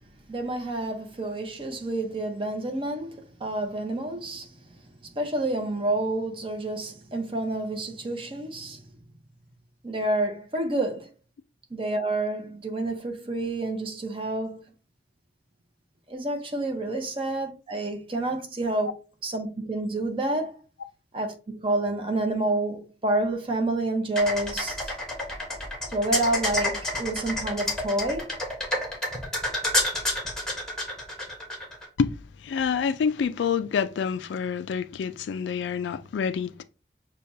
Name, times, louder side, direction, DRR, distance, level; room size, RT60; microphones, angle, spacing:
voice 1, 0.3-8.9 9.8-11.1 11.7-14.6 16.1-18.9 19.2-20.6 21.1-24.9 25.9-28.4, right 2 dB, 30° right, 0.7 m, -29 dB
sound 1, 24.1-31.8, left 1 dB, 5° left, 1.0 m, -29 dB
voice 2, 32.4-36.6, left 6 dB, 85° left, 0.3 m, -27 dB
6.3 x 2.3 x 2.6 m
head